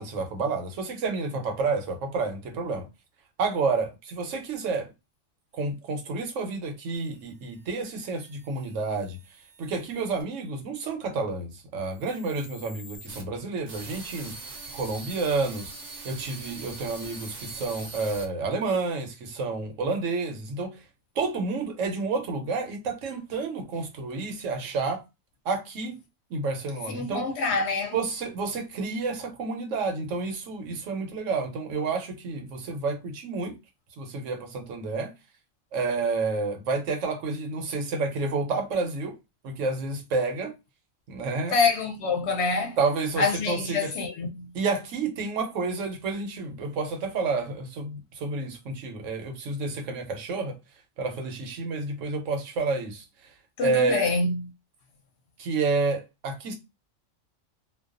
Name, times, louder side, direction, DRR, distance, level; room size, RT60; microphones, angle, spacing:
voice 1, 0.0-2.9 3.4-4.9 5.5-9.2 9.6-14.3 14.7-15.7 16.0-20.8 21.2-25.0 25.5-26.0 26.3-27.3 27.9-33.6 34.0-35.1 35.7-39.1 39.4-40.5 41.1-41.6 42.8-43.9 44.5-50.6 51.0-53.0 53.6-54.1 55.4-56.5, right 3 dB, 75° right, 1.0 m, -29 dB
sound 1, 6.9-10.2 11.8-18.3, right 3 dB, 50° right, 0.8 m, -44 dB
voice 2, 26.9-28.0 41.5-42.8 43.2-44.5 53.6-54.5, left 4 dB, 65° left, 0.8 m, -26 dB
2.3 x 2.3 x 2.4 m
omnidirectional pair, 1.4 m